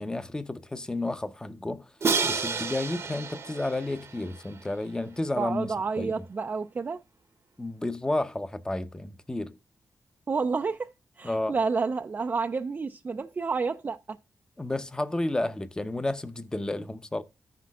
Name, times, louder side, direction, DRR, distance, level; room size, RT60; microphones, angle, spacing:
voice 1, 0.0-1.9 2.2-6.1 7.6-9.6 11.2-11.5 14.6-17.2, left 2 dB, 15° left, 0.6 m, -31 dB
Crash cymbal, 2.0-5.0, right 5 dB, 50° right, 0.9 m, -30 dB
voice 2, 5.4-7.0 10.3-14.2, right 4 dB, 35° right, 0.4 m, -30 dB
14.5 x 5.9 x 2.3 m
cardioid pair, 95°, 6 cm